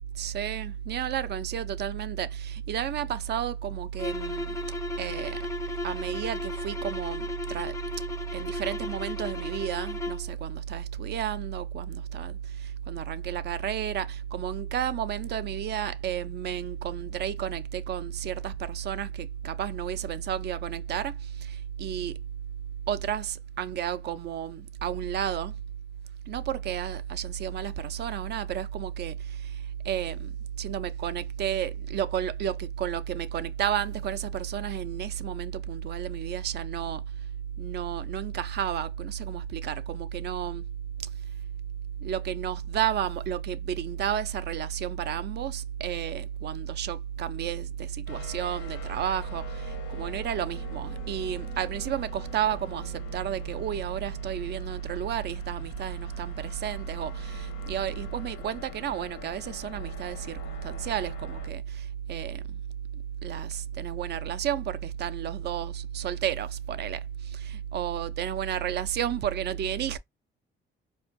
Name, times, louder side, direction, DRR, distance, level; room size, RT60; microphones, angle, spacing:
voice 1, 0.2-4.6 5.0-5.4 5.8-7.7 8.3-22.2 22.9-25.5 26.3-29.5 29.8-30.3 30.6-37.0 37.6-40.6 42.0-62.6 63.2-70.0, right 9 dB, 55° right, 0.4 m, -32 dB
sound 1, 3.9-10.3, left 3 dB, 15° left, 0.4 m, -36 dB
sound 2, 48.1-61.5, left 6 dB, 85° left, 0.8 m, -44 dB
4.4 x 2.3 x 2.5 m
cardioid pair, 90°, 20 cm